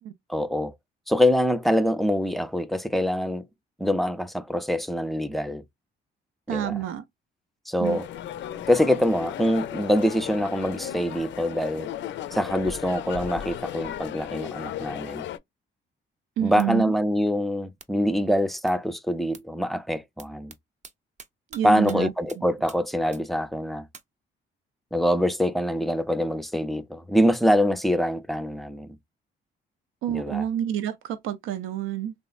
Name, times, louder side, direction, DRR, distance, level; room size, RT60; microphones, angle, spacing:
voice 1, 0.3-0.7 1.1-3.5 3.8-5.6 6.5-6.8 7.7-8.1 8.7-11.9 12.3-15.3 16.4-20.5 21.6-23.9 24.9-29.0 30.1-30.5, equal, ahead, 0.4 m, -24 dB
voice 2, 6.5-7.0 7.8-8.0 16.4-16.9 21.5-22.1 30.0-32.1, right 10 dB, 85° right, 0.5 m, -28 dB
sound 1, 7.8-15.4, left 11 dB, 70° left, 0.4 m, -35 dB
sound 2, 16.6-16.7 17.8-17.9 18.7-18.8 19.3-19.4 20.2-20.6 20.8-20.9 21.2-21.6 21.9-22.0 22.3-22.4 22.7-22.8 23.1-23.2 23.9-24.0, right 5 dB, 35° right, 0.6 m, -45 dB
3.4 x 2.0 x 2.3 m
cardioid pair, 90°, 20 cm